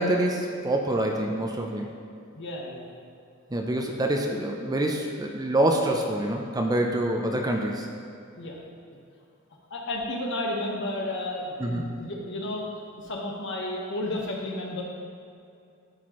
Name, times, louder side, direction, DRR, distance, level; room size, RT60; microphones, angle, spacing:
voice 1, 0.0-1.9 3.5-7.9 11.6-11.8, right 1 dB, 20° right, 2 dB, 0.5 m, -26 dB
voice 2, 2.3-2.9 3.6-3.7 8.3-8.6 9.7-12.7 13.0-14.8, left 1 dB, 55° left, -2 dB, 1.2 m, -32 dB
12.5 x 4.5 x 3.0 m, 2.5 s
head